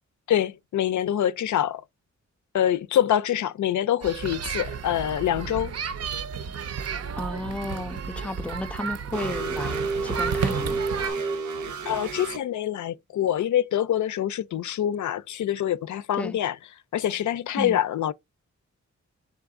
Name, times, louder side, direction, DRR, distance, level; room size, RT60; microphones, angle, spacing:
voice 1, 0.3-1.8 2.5-5.8 11.9-16.6 16.9-18.1, left 11 dB, 80° left, 0.5 m, -25 dB
sound 1, 4.0-11.1, right 6 dB, 60° right, 0.5 m, -32 dB
voice 2, 7.2-10.8 16.1-16.4 17.6-17.8, left 1 dB, 5° left, 0.4 m, -33 dB
sound 2, 9.1-12.4, right 4 dB, 85° right, 0.9 m, -30 dB
3.8 x 3.5 x 3.6 m
wide cardioid pair, 135°, 29 cm